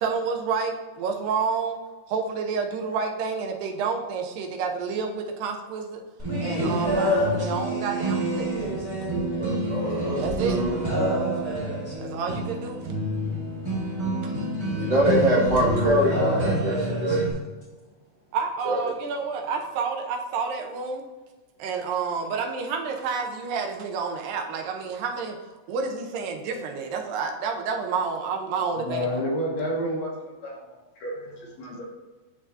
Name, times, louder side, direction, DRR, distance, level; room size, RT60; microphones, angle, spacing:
voice 1, 0.0-1.8 2.1-6.0 6.4-8.5 10.2-10.6 12.0-12.8 18.3-21.0 21.6-25.3 25.7-29.1, right 5 dB, 90° right, 3 dB, 2.4 m, -29 dB
sound 1, 6.2-17.3, right 1 dB, 10° right, 1.3 m, -27 dB
voice 2, 9.4-9.9 14.8-17.2 18.6-18.8, right 1 dB, 40° right, -7 dB, 1.6 m, -23 dB
voice 3, 28.8-30.1 30.4-30.6 31.0-31.9, equal, 65° left, -2 dB, 2.0 m, -29 dB
11.0 x 3.6 x 2.7 m, 1.2 s
omnidirectional pair, 3.8 m